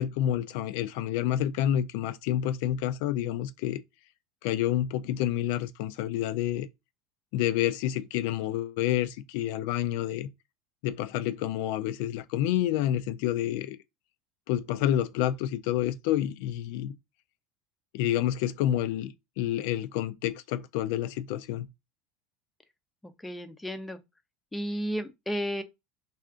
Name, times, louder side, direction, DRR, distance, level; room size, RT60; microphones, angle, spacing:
voice 1, 0.0-3.8 4.4-6.7 7.3-10.3 10.8-13.8 14.5-16.9 17.9-21.7, left 12 dB, 70° left, 0.3 m, -29 dB
voice 2, 23.2-24.0 24.5-25.6, equal, 10° left, 0.5 m, -32 dB
2.4 x 2.4 x 3.6 m
supercardioid pair, 115°, 0 cm